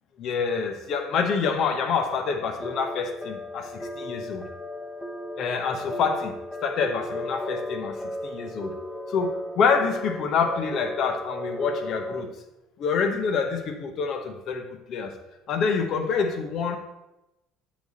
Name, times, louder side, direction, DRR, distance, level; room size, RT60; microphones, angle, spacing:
voice 1, 0.2-4.5 5.4-8.7 9.1-12.3 12.8-15.1 15.5-16.8, left 5 dB, 55° left, 6 dB, 1.1 m, -27 dB
sound 1, 2.6-12.2, left 1 dB, 10° left, 1.0 m, -35 dB
7.6 x 5.4 x 4.1 m, 0.93 s
hypercardioid pair, 65°, 0 cm